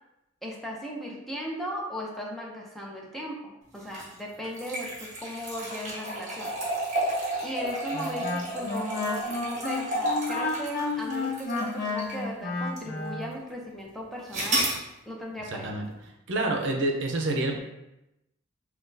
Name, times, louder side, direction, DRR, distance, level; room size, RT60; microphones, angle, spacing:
voice 1, 0.4-6.5 6.8-7.0 7.4-14.7 15.1-15.7, equal, ahead, -2 dB, 0.5 m, -37 dB
sound 1, 3.8-12.3 12.8-12.9 14.3-14.8, right 1 dB, 40° right, 1.3 m, -32 dB
Wind instrument woodwind instrument, 7.9-13.3, left 3 dB, 50° left, 0.6 m, -31 dB
voice 2, 15.5-15.8 16.3-17.6, right 2 dB, 65° right, 2 dB, 0.6 m, -27 dB
5.8 x 2.3 x 2.6 m, 0.91 s
head